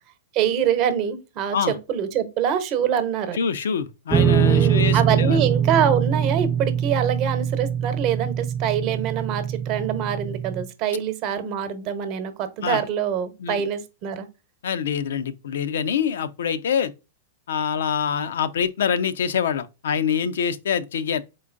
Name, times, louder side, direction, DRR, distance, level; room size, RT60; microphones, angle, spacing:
voice 1, 0.3-3.4 4.4-14.3, right 8 dB, 45° right, 0.9 m, -25 dB
voice 2, 3.3-5.4 12.6-12.8 13.4-13.6 14.6-16.9 17.5-21.2, left 7 dB, 75° left, 0.4 m, -25 dB
sound 1, 4.1-10.6, right 8 dB, 15° right, 0.3 m, -23 dB
4.3 x 3.7 x 2.5 m
hypercardioid pair, 115°, 0 cm